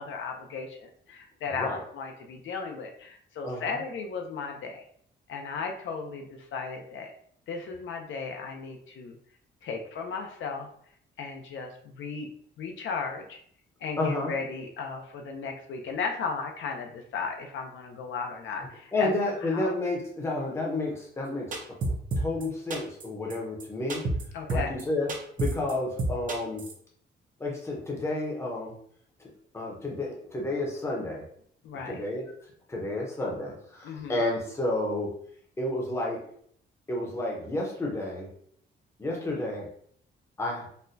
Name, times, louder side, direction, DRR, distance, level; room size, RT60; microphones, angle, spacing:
voice 1, 0.0-4.8 5.3-7.1 7.5-9.1 9.6-10.7 11.2-12.3 12.6-13.4 13.8-19.1 19.4-19.7 24.3-24.8 31.6-32.0 33.8-34.2, left 5 dB, 70° left, 3 dB, 0.5 m, -35 dB
voice 2, 3.4-3.8 14.0-14.3 18.9-21.6 22.2-24.0 24.5-25.1 25.4-26.6 27.4-28.7 29.5-31.2 31.9-32.3 32.7-35.1 35.6-36.2 36.9-38.3 39.0-39.7 40.4-40.7, left 2 dB, 15° left, -2 dB, 0.6 m, -30 dB
sound 1, 21.5-22.4 22.7-23.0 23.3-23.4 23.6-23.7 23.9-24.2 24.5-24.8 25.1-25.7 26.0-26.7, right 2 dB, 40° right, 0.6 m, -29 dB
4.1 x 2.2 x 2.6 m, 0.64 s
wide cardioid pair, 165°, 20 cm